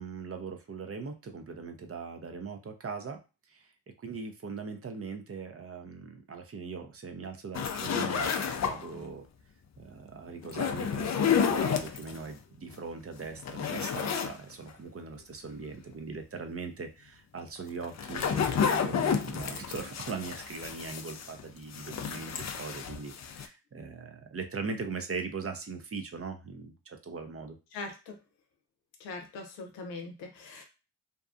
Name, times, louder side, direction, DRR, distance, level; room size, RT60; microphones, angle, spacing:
voice 1, 0.0-3.2 3.5-3.7 4.0-9.3 9.8-27.6, right 4 dB, 30° right, 6 dB, 0.6 m, -40 dB
sound 1, 7.5-9.0 10.4-12.2 12.7-12.8 13.2-14.4 14.7-14.8 17.6-21.4 21.7-23.5, left 7 dB, 40° left, 0.5 m, -30 dB
voice 2, 27.7-28.2 29.0-30.6, left 3 dB, 90° left, 3 dB, 0.7 m, -41 dB
2.7 x 2.3 x 2.5 m, 0.30 s
supercardioid pair, 45°, 43 cm